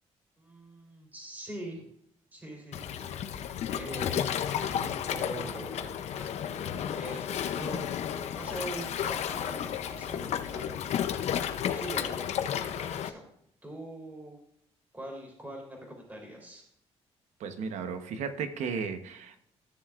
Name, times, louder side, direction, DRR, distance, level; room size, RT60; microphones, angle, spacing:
voice 1, 0.4-1.9 2.3-3.1 3.7-10.8 11.4-13.2 13.6-14.4 14.9-16.7, right 1 dB, 15° right, -1 dB, 3.6 m, -43 dB
Waves surf, 2.7-13.1, left 9 dB, 70° left, 0.7 m, -32 dB
voice 2, 17.4-19.4, right 5 dB, 85° right, 8 dB, 1.1 m, -34 dB
14.5 x 6.8 x 2.5 m, 0.73 s
cardioid pair, 105°, 12 cm